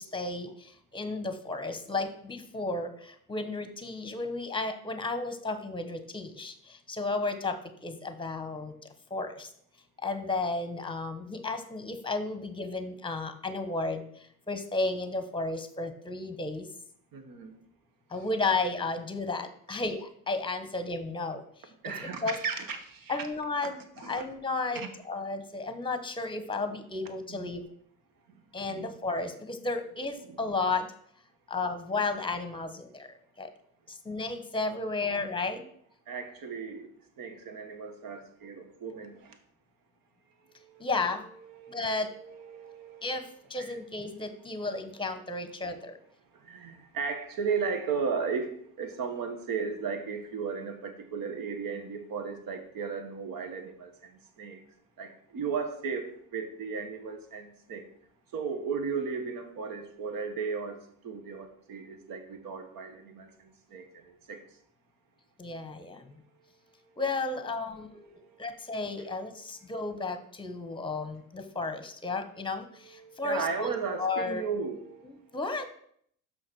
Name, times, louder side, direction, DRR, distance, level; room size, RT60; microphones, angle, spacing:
voice 1, 0.0-8.7 9.1-9.5 10.0-16.7 18.1-21.4 22.0-22.4 23.1-23.8 24.1-27.6 28.5-30.9 31.5-33.1 33.4-33.5 33.9-35.6 40.8-41.2 41.7-42.1 43.0-46.0 65.4-66.1 67.0-73.7 74.0-74.4 75.3-75.7, left 3 dB, 10° left, 9 dB, 1.1 m, -33 dB
voice 2, 17.1-17.6 18.1-18.2 21.8-23.3 24.0-24.2 24.7-24.9 27.3-27.5 28.3-29.0 30.2-30.5 36.1-36.9 37.2-39.4 40.6-40.9 41.4-43.2 43.6-43.8 46.3-54.6 55.0-57.9 58.3-64.4 68.0-68.7 72.8-75.1, right 5 dB, 55° right, 7 dB, 1.6 m, -36 dB
6.2 x 5.9 x 6.2 m, 0.65 s
cardioid pair, 105°, 40 cm